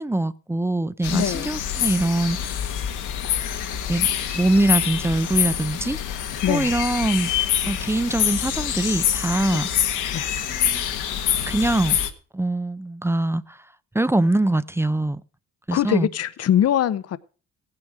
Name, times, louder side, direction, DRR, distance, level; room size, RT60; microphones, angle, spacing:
voice 1, 0.0-2.7 3.9-6.2 6.5-7.3 7.7-10.0 10.4-10.9 11.5-12.0 12.3-13.7 13.9-15.2 15.7-16.1, right 2 dB, 10° right, 0.5 m, -23 dB
sound 1, 1.0-12.1, left 9 dB, 85° left, 1.5 m, -26 dB
voice 2, 1.1-1.5 6.4-6.7 9.5-9.6 10.1-10.3 15.7-17.2, left 10 dB, 55° left, 0.8 m, -22 dB
16.0 x 9.8 x 4.7 m
cardioid pair, 90°, 30 cm